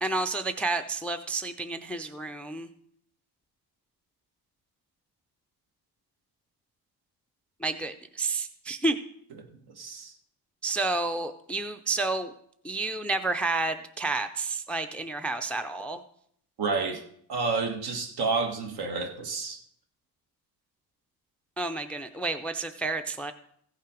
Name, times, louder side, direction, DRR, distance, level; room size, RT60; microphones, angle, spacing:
voice 1, 0.0-2.7 7.6-9.0 10.6-12.3 12.6-16.0 21.6-23.3, right 3 dB, 5° left, 0.3 m, -30 dB
voice 2, 9.5-10.1 16.6-17.0 17.3-19.6, right 4 dB, 70° right, 1.6 m, -30 dB
15.5 x 5.6 x 5.1 m
cardioid pair, 150°, 39 cm